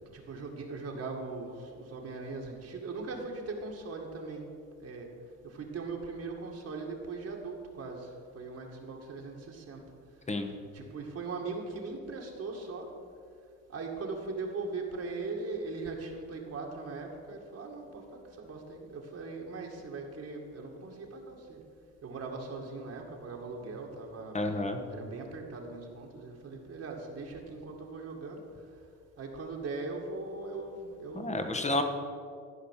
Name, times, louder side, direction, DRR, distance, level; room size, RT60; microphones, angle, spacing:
voice 1, 0.1-4.5 4.8-5.1 5.4-8.1 8.3-9.8 10.7-12.9 13.7-18.0 18.4-21.6 22.0-24.4 24.9-28.4 29.2-31.7, right 3 dB, 55° right, 0 dB, 2.2 m, -40 dB
voice 2, 24.3-24.8 31.1-31.8, left 2 dB, 25° left, 5 dB, 1.5 m, -30 dB
14.5 x 5.2 x 7.5 m, 2.2 s
cardioid pair, 90°, 30 cm